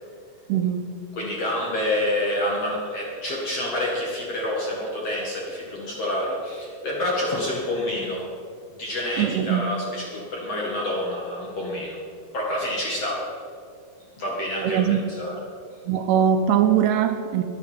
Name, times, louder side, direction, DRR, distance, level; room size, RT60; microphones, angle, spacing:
voice 1, 0.5-0.8 9.2-9.6 14.6-15.0 15.9-17.4, right 9 dB, 80° right, 7 dB, 2.5 m, -21 dB
voice 2, 1.2-8.3 8.8-12.0 12.3-13.3 14.2-15.4, left 1 dB, 50° left, -3 dB, 2.1 m, -28 dB
21.5 x 8.2 x 5.0 m, 2.3 s
omnidirectional pair, 5.0 m